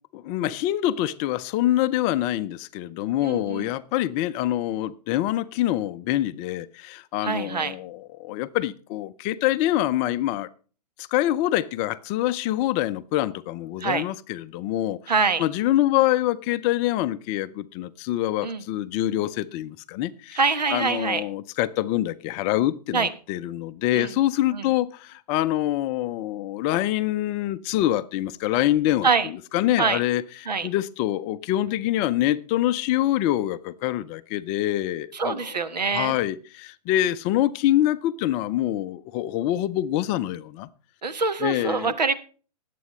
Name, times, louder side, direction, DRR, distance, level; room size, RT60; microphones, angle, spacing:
voice 1, 0.1-10.5 11.0-15.0 15.4-20.4 20.7-35.6 35.9-40.7 41.4-41.9, left 14 dB, 30° left, 14 dB, 0.6 m, -25 dB
voice 2, 3.2-3.7 7.2-7.7 13.8-14.0 15.1-15.4 18.4-18.6 20.3-21.2 22.9-23.1 23.9-24.1 24.5-24.6 29.0-29.3 29.8-30.0 30.5-30.7 35.1-36.2 41.0-42.1, right 4 dB, 85° right, 10 dB, 1.3 m, -24 dB
20.5 x 8.5 x 3.1 m, 0.38 s
hypercardioid pair, 125°, 21 cm